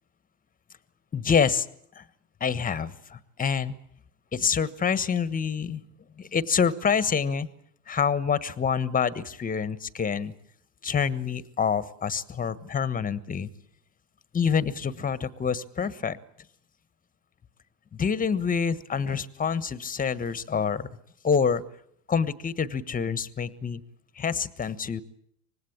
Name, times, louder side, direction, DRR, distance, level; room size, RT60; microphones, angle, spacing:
voice 1, 1.1-1.7 1.9-2.0 2.4-3.7 4.3-5.8 6.2-7.5 7.9-10.3 10.8-13.5 14.3-16.2 17.9-20.9 21.2-21.6 22.1-23.8 24.2-25.0, left 6 dB, 20° left, 17 dB, 1.3 m, -26 dB
25.0 x 19.5 x 8.7 m, 0.69 s
hypercardioid pair, 105°, 46 cm